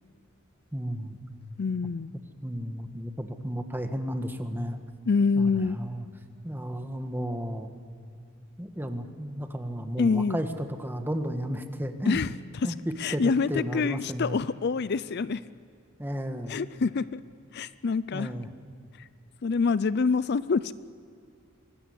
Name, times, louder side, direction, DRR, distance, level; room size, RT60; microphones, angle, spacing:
voice 1, 0.7-1.2 2.4-4.8 5.4-6.0 6.4-7.8 8.6-12.2 12.6-14.4 16.0-16.6 18.1-18.5, equal, 10° right, 6 dB, 1.6 m, -33 dB
voice 2, 1.6-2.1 5.1-5.8 10.0-10.4 12.1-12.3 12.6-15.4 16.5-17.2 17.5-18.3 19.0-19.1 19.4-20.7, left 4 dB, 55° left, 16 dB, 0.5 m, -26 dB
24.5 x 19.5 x 8.2 m, 2.5 s
head